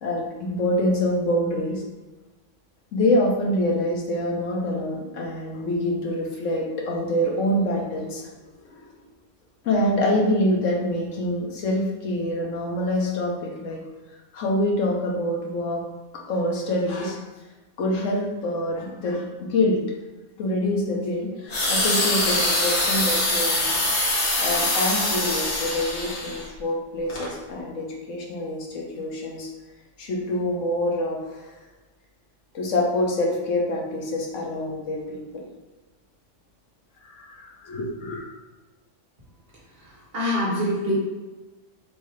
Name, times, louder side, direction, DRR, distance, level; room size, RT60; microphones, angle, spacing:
voice 1, 0.0-1.8 2.9-8.3 8.6-9.0 9.6-13.8 14.3-15.8 16.3-17.2 17.8-19.8 20.4-23.9 24.4-29.5 30.0-31.5 32.5-35.5 37.0-38.3, left 1 dB, 90° left, -1 dB, 1.3 m, -26 dB
sound 1, 21.5-26.5 27.1-27.3, left 1 dB, 65° left, 1.3 m, -24 dB
voice 2, 39.8-40.9, left 1 dB, 50° right, -7 dB, 1.8 m, -25 dB
6.1 x 2.8 x 3.2 m, 1.2 s
omnidirectional pair, 1.3 m